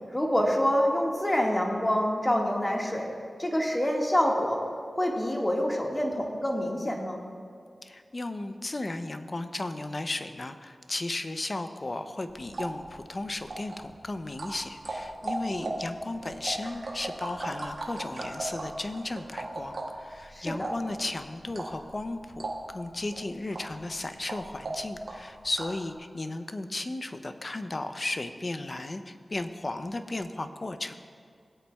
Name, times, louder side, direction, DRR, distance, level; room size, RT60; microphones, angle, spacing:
voice 1, 0.1-3.1 3.4-4.6 5.0-7.2 15.5-15.7 20.3-20.7, equal, 20° left, -1 dB, 1.8 m, -26 dB
voice 2, 7.8-31.0, left 2 dB, 45° left, 9 dB, 0.6 m, -35 dB
sound 1, 12.3-25.9, right 2 dB, 70° right, 1.5 m, -38 dB
17.5 x 8.4 x 2.3 m, 2.3 s
cardioid pair, 50°, 0 cm